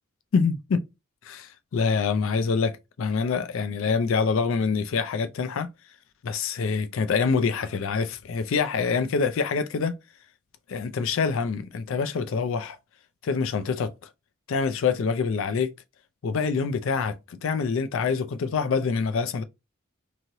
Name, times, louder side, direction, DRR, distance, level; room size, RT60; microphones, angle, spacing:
voice 1, 0.3-0.8 1.2-5.7 6.2-9.9 10.7-12.8 13.2-13.9 14.5-15.7 16.2-19.4, left 5 dB, 65° left, 0.4 m, -25 dB
3.0 x 2.8 x 2.6 m
head